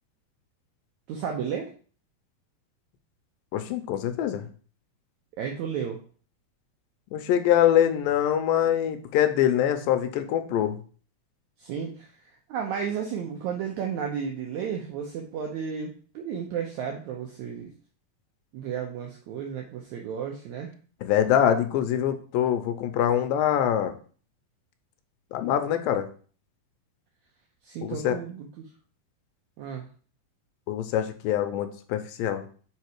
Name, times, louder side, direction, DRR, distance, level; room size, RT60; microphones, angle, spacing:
voice 1, 1.1-1.7 5.4-6.0 11.6-17.7 18.5-20.7 27.6-28.5 29.6-29.9, right 7 dB, 75° right, 1 dB, 1.8 m, -33 dB
voice 2, 3.5-4.5 7.1-10.8 21.0-23.9 25.3-26.1 27.8-28.2 30.7-32.4, left 10 dB, 85° left, 8 dB, 2.4 m, -24 dB
5.6 x 5.2 x 4.6 m, 0.41 s
omnidirectional pair, 4.1 m